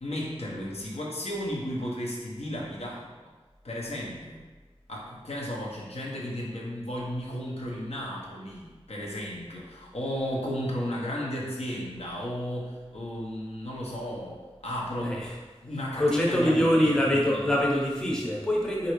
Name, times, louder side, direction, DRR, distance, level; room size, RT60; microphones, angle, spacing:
voice 1, 0.0-3.1 3.6-4.4 4.9-15.2 15.6-16.9 17.2-17.6 18.1-18.2, equal, 80° left, -4 dB, 0.7 m, -34 dB
voice 2, 15.0-15.3 16.0-18.9, left 1 dB, 5° left, -3 dB, 0.6 m, -24 dB
3.2 x 2.5 x 3.0 m, 1.3 s
wide cardioid pair, 60°, 10 cm